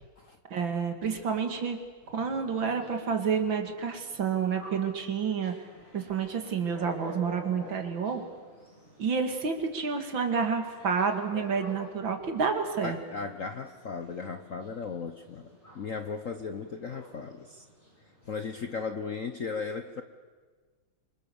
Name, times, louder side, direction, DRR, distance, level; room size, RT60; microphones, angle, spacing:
voice 1, 0.5-1.8 2.1-5.5 5.9-8.2 9.0-13.0, right 6 dB, 65° right, 5 dB, 2.8 m, -29 dB
sound 1, 2.0-18.8, left 1 dB, 20° left, 6.3 m, -50 dB
voice 2, 12.8-17.6 18.2-20.0, left 5 dB, 50° left, 8 dB, 1.0 m, -36 dB
27.0 x 25.0 x 7.1 m, 1.4 s
omnidirectional pair, 2.4 m